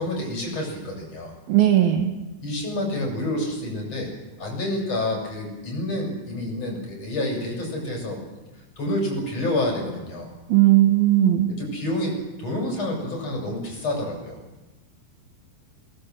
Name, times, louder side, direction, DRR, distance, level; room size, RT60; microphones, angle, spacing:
voice 1, 0.0-1.3 2.4-4.1 4.4-8.2 8.8-10.3 11.6-14.4, left 1 dB, 40° left, 0 dB, 7.7 m, -28 dB
voice 2, 1.5-2.1 10.5-11.5, right 13 dB, 70° right, 6 dB, 3.2 m, -17 dB
22.5 x 18.5 x 7.9 m, 1.1 s
omnidirectional pair, 4.5 m